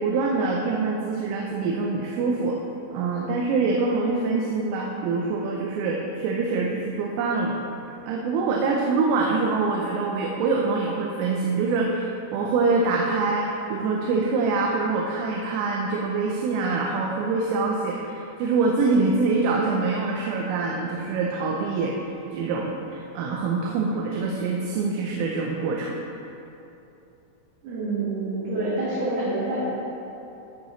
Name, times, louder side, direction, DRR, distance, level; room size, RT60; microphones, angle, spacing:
voice 1, 0.0-2.6 2.9-7.6 8.1-22.0 22.3-25.9, right 4 dB, 85° right, -1 dB, 3.3 m, -25 dB
voice 2, 27.6-29.6, right 2 dB, 65° right, -9 dB, 3.1 m, -27 dB
13.5 x 7.3 x 3.1 m, 2.9 s
omnidirectional pair, 5.7 m